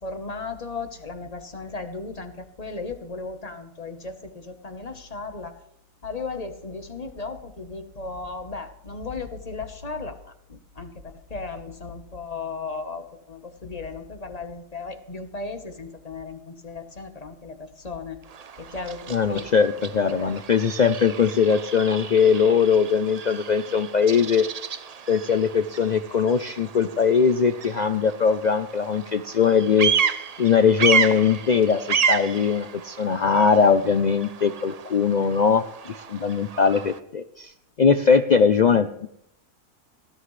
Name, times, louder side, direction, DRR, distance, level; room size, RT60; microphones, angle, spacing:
voice 1, 0.0-5.6 6.0-18.2 18.6-19.5 20.0-20.4, left 3 dB, 30° left, 7 dB, 1.2 m, -36 dB
Bird vocalization bird call bird song, 18.2-37.0, right 6 dB, 60° right, 0.4 m, -31 dB
voice 2, 19.1-24.4 25.1-29.9 30.4-35.6 36.1-37.5 37.8-39.1, left 6 dB, 75° left, 9 dB, 0.4 m, -20 dB
19.0 x 11.5 x 3.2 m, 0.74 s
omnidirectional pair, 1.5 m